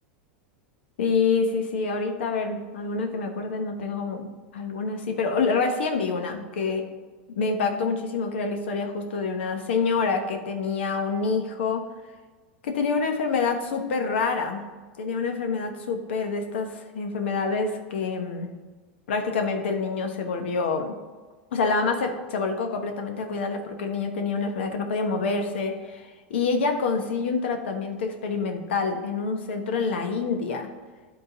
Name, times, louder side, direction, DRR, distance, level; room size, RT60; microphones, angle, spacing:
voice 1, 1.0-4.3 4.5-6.8 7.4-11.8 12.6-14.6 15.0-18.5 19.1-20.9 21.5-30.7, left 4 dB, 80° left, 5 dB, 1.1 m, -27 dB
11.0 x 3.8 x 4.0 m, 1.4 s
hypercardioid pair, 115°, 6 cm